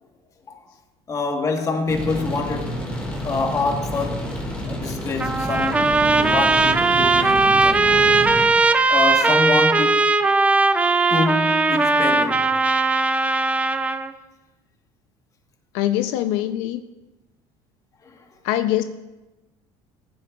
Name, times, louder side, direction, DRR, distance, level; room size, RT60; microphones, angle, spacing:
voice 1, 1.1-2.9 3.2-4.4 4.7-8.3 8.9-10.1 11.1-12.5 18.1-18.2, left 3 dB, 25° left, 1.2 m, -26 dB
sound 1, 1.9-8.4, equal, 10° left, 1.8 m, -30 dB
Trumpet, 5.2-14.1, right 3 dB, 10° right, 0.4 m, -18 dB
voice 2, 15.7-16.8 18.4-18.8, left 13 dB, 80° left, 0.5 m, -23 dB
15.5 x 10.0 x 2.3 m
cardioid pair, 140°, 12 cm